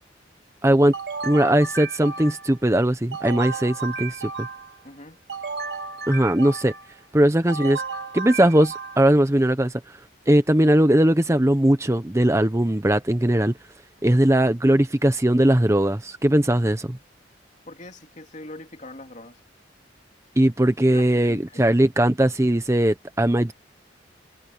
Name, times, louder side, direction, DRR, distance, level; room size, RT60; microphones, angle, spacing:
voice 1, 0.6-0.9 1.2-4.5 6.1-6.7 7.1-7.8 8.1-10.0 10.3-13.6 14.0-17.0 20.4-23.5, right 1 dB, 15° right, 0.8 m, -19 dB
sound 1, 0.9-2.6 3.1-4.8 5.3-6.9 7.5-9.2, right 4 dB, 65° right, 2.7 m, -33 dB
voice 2, 4.8-5.2 17.7-19.4 20.9-21.7, left 1 dB, 40° left, 3.1 m, -42 dB
head